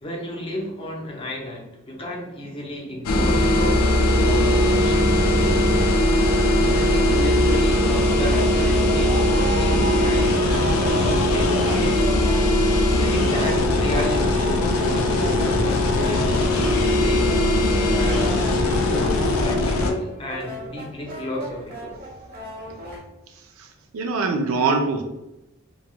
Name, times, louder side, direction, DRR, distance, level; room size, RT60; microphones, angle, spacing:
voice 1, 0.0-5.9 6.6-12.1 13.0-17.4 17.9-18.3 18.6-22.0, left 1 dB, 25° left, -1 dB, 0.5 m, -32 dB
sound 1, 3.0-19.9, left 1 dB, 90° left, 0.5 m, -20 dB
sound 2, 4.4-23.0, equal, 45° right, 0.9 m, -36 dB
voice 2, 23.9-25.0, right 4 dB, 80° right, 4 dB, 0.4 m, -24 dB
3.1 x 2.8 x 2.2 m, 0.98 s
head